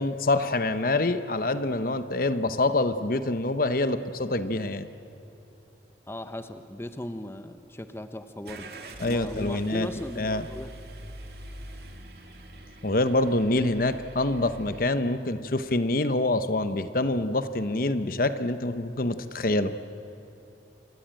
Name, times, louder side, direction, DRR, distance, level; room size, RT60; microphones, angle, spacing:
voice 1, 0.0-4.9 9.0-9.9 10.2-10.5 12.8-19.7, left 2 dB, 55° left, 11 dB, 1.0 m, -26 dB
voice 2, 6.1-8.7 9.1-10.7, left 1 dB, 15° left, 9 dB, 0.9 m, -37 dB
Car / Engine starting, 8.4-14.9, right 1 dB, 60° right, 2.7 m, -44 dB
28.0 x 23.5 x 9.1 m, 3.0 s
head